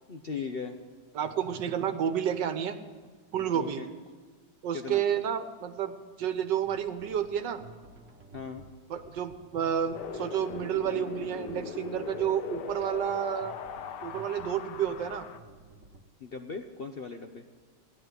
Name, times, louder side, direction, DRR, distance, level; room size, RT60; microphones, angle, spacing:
voice 1, 0.1-0.8 3.5-3.9 4.7-5.0 8.3-8.6 16.2-17.5, left 5 dB, 55° left, 5 dB, 0.6 m, -38 dB
voice 2, 1.1-2.8 3.3-3.8 4.6-7.6 8.9-13.5 14.0-15.3, right 9 dB, 75° right, 9 dB, 1.6 m, -30 dB
sound 1, 6.5-16.0, right 2 dB, 45° right, 1.4 m, -53 dB
Wind, 9.9-15.4, left 6 dB, 75° left, 1.5 m, -40 dB
16.0 x 11.0 x 8.0 m, 1.5 s
omnidirectional pair, 1.9 m